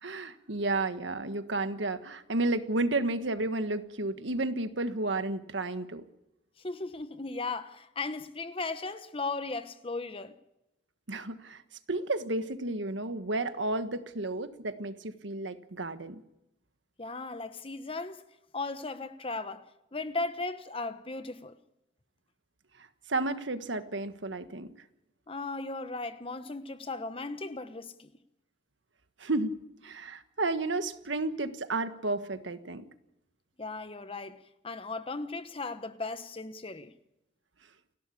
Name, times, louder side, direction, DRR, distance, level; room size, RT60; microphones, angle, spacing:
voice 1, 0.0-6.0 11.1-11.6 11.9-16.2 23.1-24.7 29.2-29.5 29.8-32.8, right 2 dB, 80° right, 1.5 m, -32 dB
voice 2, 6.6-10.3 17.0-18.2 18.5-19.7 19.9-21.6 25.3-28.1 33.6-36.9, left 3 dB, 30° left, 1.1 m, -37 dB
29.5 x 12.0 x 8.5 m
head